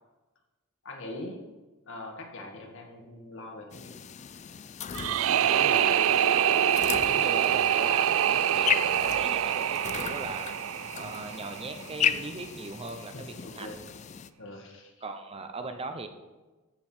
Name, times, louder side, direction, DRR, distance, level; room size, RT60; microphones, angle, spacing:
voice 1, 0.8-1.4 1.9-3.9 5.3-5.6 8.9-9.0 13.1-13.8 14.4-15.0, left 1 dB, 65° left, 2 dB, 1.8 m, -42 dB
sound 1, 3.7-14.3, left 8 dB, 35° left, 0.4 m, -35 dB
sound 2, 4.9-11.9, right 10 dB, 70° right, 0.4 m, -25 dB
voice 2, 5.2-10.5 10.9-13.1 13.5-13.8 15.0-16.1, right 3 dB, 30° right, 8 dB, 0.7 m, -39 dB
13.5 x 5.9 x 4.4 m, 1.2 s
head